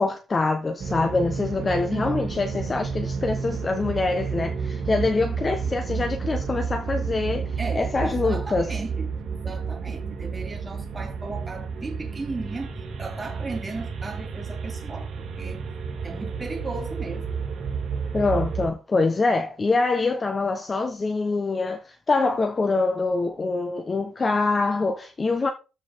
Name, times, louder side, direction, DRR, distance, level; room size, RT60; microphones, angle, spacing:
voice 1, 0.0-8.7 18.1-25.5, left 3 dB, 30° left, 1.2 m, -25 dB
sound 1, 0.8-18.7, right 5 dB, 70° right, 3.6 m, -31 dB
voice 2, 1.9-2.2 7.6-12.7 13.0-15.6 16.0-17.3, right 3 dB, 25° right, 2.8 m, -36 dB
13.5 x 5.0 x 3.7 m
cardioid pair, 90°, 0 cm